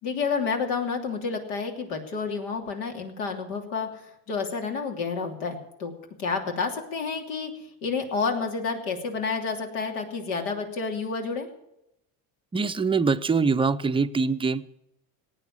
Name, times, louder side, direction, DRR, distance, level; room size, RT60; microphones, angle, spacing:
voice 1, 0.0-5.9 6.2-11.5, left 5 dB, 80° left, 3 dB, 3.0 m, -30 dB
voice 2, 12.5-14.7, right 4 dB, 15° right, 10 dB, 0.6 m, -24 dB
18.0 x 9.0 x 7.3 m, 0.84 s
supercardioid pair, 95°, 42 cm